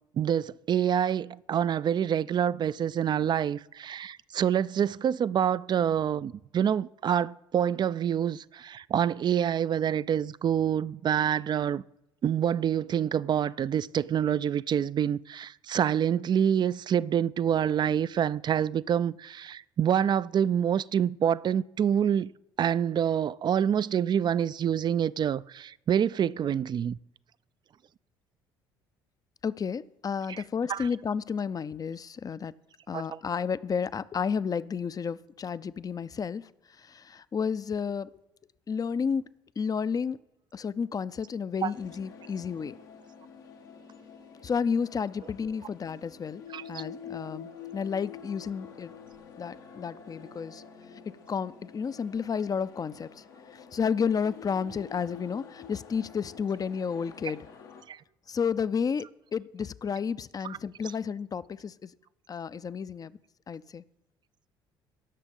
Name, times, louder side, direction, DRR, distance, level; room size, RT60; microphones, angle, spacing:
voice 1, 0.2-11.8 12.2-22.3 22.6-27.0 30.7-30.9 32.9-33.2 41.6-41.7 46.5-46.8 57.9-58.0 60.4-60.6, right 9 dB, 40° right, 0.4 m, -27 dB
voice 2, 29.4-32.5 32.9-36.5 36.8-38.1 38.7-40.2 40.5-42.7 44.4-46.4 46.7-48.9 49.4-50.6 51.3-53.2 53.5-57.5 58.3-59.1 59.3-61.9 62.3-63.2 63.5-63.8, left 6 dB, 35° left, 0.5 m, -31 dB
sound 1, 41.7-57.8, left 7 dB, 85° left, 1.5 m, -48 dB
17.5 x 6.4 x 5.4 m
hypercardioid pair, 60°, 11 cm